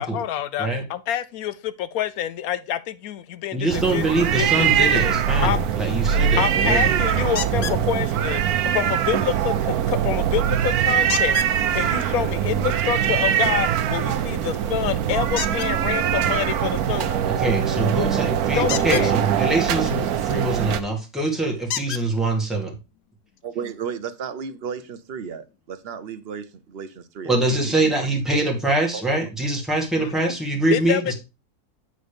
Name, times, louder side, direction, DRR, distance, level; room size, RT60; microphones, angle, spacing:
voice 1, 0.0-4.1 4.4-5.0 5.4-5.7 6.1-8.4 8.7-17.2 18.6-19.1 30.0-30.1 30.7-31.1, left 10 dB, 80° left, 1.1 m, -27 dB
voice 2, 3.5-7.0 7.6-7.8 17.2-22.7 27.2-31.1, right 2 dB, ahead, 1.9 m, -24 dB
sound 1, 3.7-20.8, right 9 dB, 85° right, 1.2 m, -22 dB
sound 2, 7.4-7.8 11.1-11.5 15.3-15.7 18.6-19.1 20.7-20.8 21.7-22.0 23.0-23.1 23.6-23.7, left 10 dB, 65° left, 0.7 m, -29 dB
voice 3, 23.4-28.1 28.9-29.0 29.9-30.0, right 7 dB, 50° right, 0.8 m, -34 dB
8.1 x 4.1 x 5.0 m
omnidirectional pair, 1.5 m